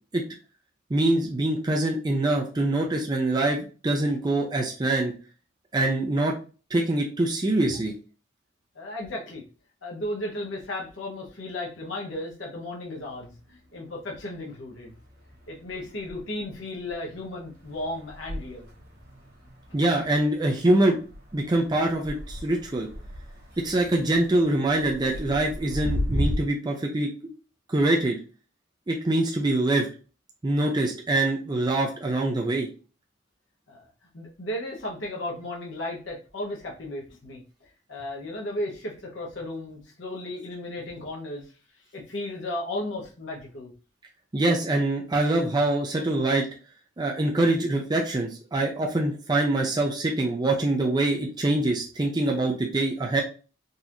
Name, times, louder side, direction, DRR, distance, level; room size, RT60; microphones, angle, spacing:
voice 1, 0.9-5.1 5.7-6.4 6.7-7.9 19.7-21.0 21.3-22.9 23.6-27.1 27.7-28.2 28.9-29.9 30.4-32.7 44.3-46.5 47.0-53.2, right 2 dB, 20° right, 0 dB, 0.4 m, -24 dB
voice 2, 8.7-9.4 9.8-14.9 15.5-18.7 33.7-33.9 34.1-37.4 37.9-41.6 41.9-43.7, left 1 dB, 85° left, -2 dB, 1.0 m, -35 dB
sound 1, 13.1-14.3 14.6-26.3, left 1 dB, 55° right, 1.1 m, -36 dB
4.0 x 2.5 x 2.9 m, 0.36 s
head